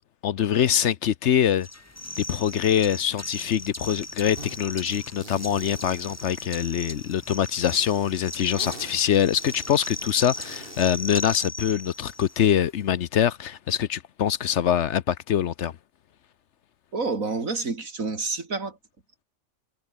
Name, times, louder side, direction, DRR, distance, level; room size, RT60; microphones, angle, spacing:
voice 1, 0.2-1.7 2.2-15.7, left 9 dB, 65° left, 1.0 m, -24 dB
sound 1, 1.6-12.5, left 1 dB, 10° left, 1.5 m, -38 dB
sound 2, 4.4-4.6 4.9-7.0 7.5-10.9, right 2 dB, 40° right, 5.0 m, -45 dB
voice 2, 16.9-18.8, right 4 dB, 80° right, 3.4 m, -28 dB
omnidirectional pair, 1.4 m